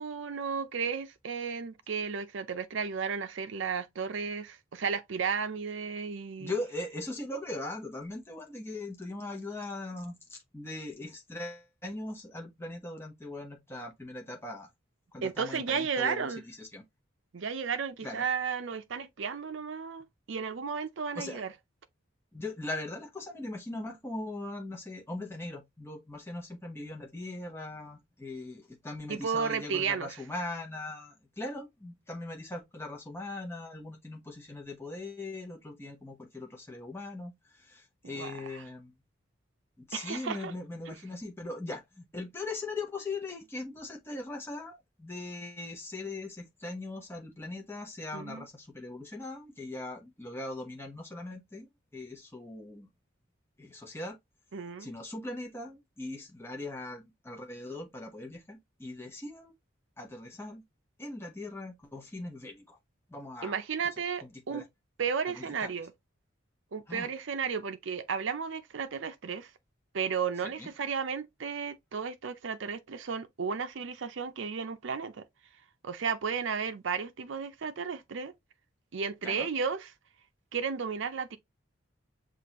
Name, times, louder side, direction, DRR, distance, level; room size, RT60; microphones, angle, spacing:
voice 1, 0.0-6.5 15.2-16.4 17.3-21.5 29.1-30.2 38.0-38.6 39.9-40.5 40.9-41.0 48.1-48.5 54.5-54.9 63.4-64.6 65.0-65.9 66.7-69.5 69.9-75.2 75.8-78.3 78.9-79.9 80.5-81.4, right 6 dB, 70° right, 0.5 m, -33 dB
voice 2, 6.4-14.7 15.1-16.8 18.0-18.2 21.1-21.4 22.3-38.9 39.8-51.7 51.9-52.9 53.6-54.2 54.8-59.5 60.0-60.6 61.0-62.8 63.1-63.6 64.2-64.7 65.3-65.7 66.9-67.1 70.6-70.7 79.2-79.5, left 2 dB, 10° left, 0.9 m, -40 dB
6.1 x 2.5 x 2.9 m
head